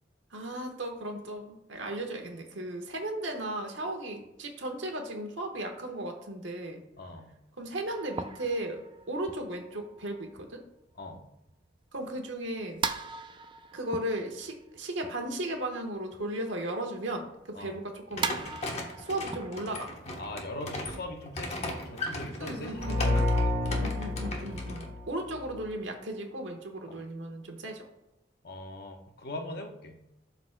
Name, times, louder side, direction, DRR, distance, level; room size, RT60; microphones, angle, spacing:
voice 1, 0.3-6.8 7.6-8.8 9.1-10.6 11.9-12.8 13.7-17.3 17.5-18.4 19.0-19.9 22.4-23.3 23.8-27.9, right 1 dB, 90° right, 3 dB, 1.2 m, -36 dB
voice 2, 7.0-7.3 11.0-11.2 17.5-17.8 20.2-23.9 28.4-30.0, left 1 dB, 55° left, 3 dB, 1.0 m, -41 dB
sound 1, 7.9-16.5 16.8-22.2, right 5 dB, 25° right, 0.4 m, -40 dB
sound 2, 18.1-24.9, left 2 dB, 35° left, 1.1 m, -38 dB
sound 3, 22.7-25.6, left 2 dB, 50° right, 2.0 m, -29 dB
12.0 x 4.0 x 2.2 m, 0.89 s
head